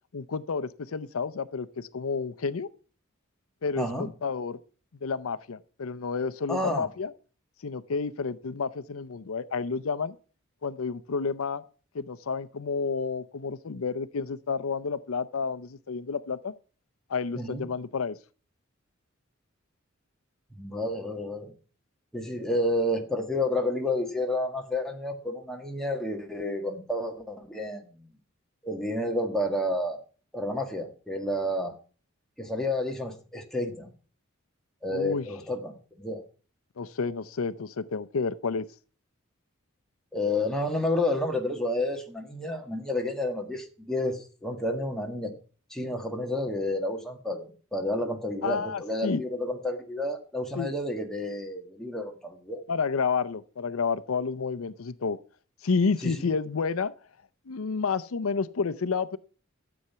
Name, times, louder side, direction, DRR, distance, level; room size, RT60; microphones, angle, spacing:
voice 1, 0.1-2.7 3.6-4.6 5.0-7.1 7.6-10.1 10.6-11.6 11.9-16.5 17.1-18.2 34.9-35.2 36.8-38.7 48.4-49.2 50.6-50.7 52.7-55.2 55.6-56.9 57.5-59.2, left 5 dB, 85° left, 0.6 m, -30 dB
voice 2, 3.8-4.1 6.5-6.9 17.3-17.6 20.5-21.5 22.1-28.0 28.6-30.0 30.3-31.7 32.4-33.9 34.8-36.2 40.1-45.3 45.7-47.5 47.7-52.6 56.0-56.1, left 1 dB, 5° left, 1.7 m, -30 dB
13.0 x 7.9 x 5.6 m
head